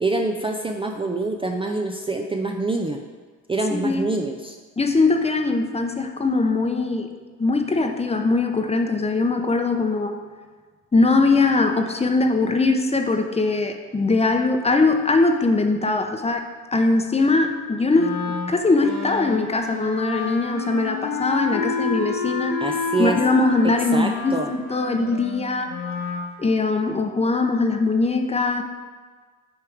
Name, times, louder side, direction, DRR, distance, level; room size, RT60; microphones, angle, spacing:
voice 1, 0.0-3.0 3.5-4.6 22.6-23.2 23.9-24.5, right 3 dB, 20° right, 3 dB, 0.4 m, -25 dB
voice 2, 3.7-4.1 4.8-7.1 7.4-10.2 10.9-22.6 23.0-25.7 26.4-28.6, left 3 dB, 20° left, 5 dB, 0.7 m, -21 dB
Wind instrument woodwind instrument, 17.9-26.2, left 5 dB, 70° left, 1.3 m, -29 dB
9.1 x 3.4 x 4.8 m, 1.5 s
cardioid pair, 90°, 30 cm